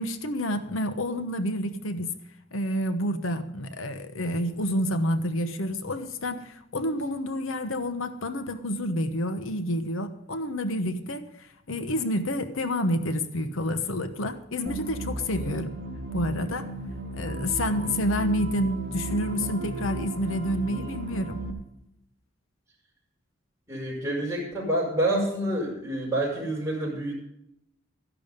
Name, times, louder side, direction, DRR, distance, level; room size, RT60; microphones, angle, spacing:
voice 1, 0.0-2.1 2.5-15.7 16.1-16.7 17.2-21.4, left 1 dB, 85° left, 1.1 m, -29 dB
sound 1, 14.7-21.5, right 2 dB, 50° right, 1.8 m, -34 dB
voice 2, 17.7-18.0 20.7-20.9 23.7-27.1, right 1 dB, 15° right, 5.5 m, -28 dB
14.0 x 11.0 x 5.2 m
head